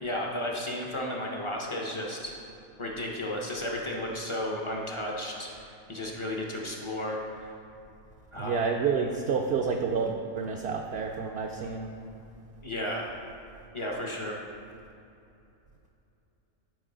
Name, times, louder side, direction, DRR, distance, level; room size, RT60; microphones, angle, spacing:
voice 1, 0.0-2.3 2.8-7.5 8.3-8.6 12.6-13.1 13.7-14.4, left 1 dB, 35° left, -1 dB, 0.5 m, -33 dB
voice 2, 8.4-11.9, right 5 dB, 65° right, 1 dB, 0.6 m, -29 dB
9.0 x 4.7 x 3.8 m, 2.7 s
omnidirectional pair, 1.4 m